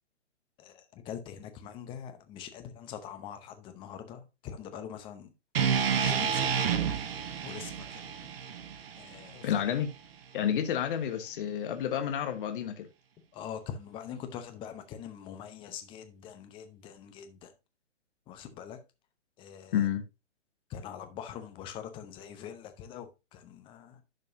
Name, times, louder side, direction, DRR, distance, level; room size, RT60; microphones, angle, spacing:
voice 1, 0.6-5.3 5.9-6.6 7.4-8.1 9.0-9.6 13.3-17.5 18.3-18.8 19.4-19.8 20.7-24.0, left 8 dB, 15° left, 0.7 m, -43 dB
sound 1, 5.5-9.7, right 7 dB, 50° right, 1.2 m, -30 dB
voice 2, 9.4-9.9 10.3-12.9 19.7-20.0, left 9 dB, 45° left, 1.3 m, -30 dB
11.0 x 5.3 x 2.6 m
hypercardioid pair, 140°, 37 cm